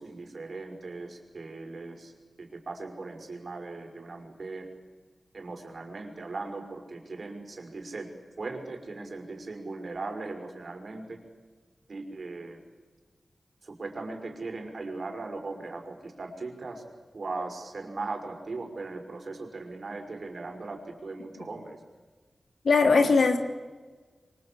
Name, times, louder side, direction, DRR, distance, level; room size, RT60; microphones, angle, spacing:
voice 1, 0.0-2.1 2.4-4.7 5.3-8.1 8.4-11.2 11.9-12.6 13.6-16.8 17.1-21.8, right 3 dB, 55° right, 3 dB, 5.4 m, -38 dB
voice 2, 22.6-23.4, left 4 dB, 85° left, 5 dB, 3.1 m, -20 dB
27.0 x 24.0 x 8.5 m, 1.4 s
wide cardioid pair, 105°, 0 cm